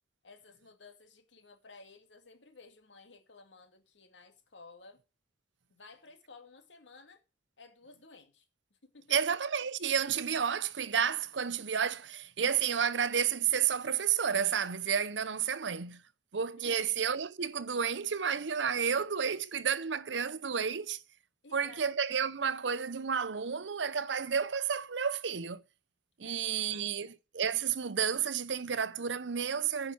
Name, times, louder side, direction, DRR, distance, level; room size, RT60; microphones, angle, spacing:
voice 1, 0.2-5.0 5.7-7.2 7.6-8.4 8.8-9.1 16.6-16.9 21.4-21.8 26.2-27.2, left 4 dB, 80° left, 2.2 m, -55 dB
voice 2, 9.1-16.0 16.3-21.0 21.5-25.6 26.2-29.9, right 7 dB, 80° right, 0.7 m, -31 dB
10.0 x 5.8 x 6.2 m
head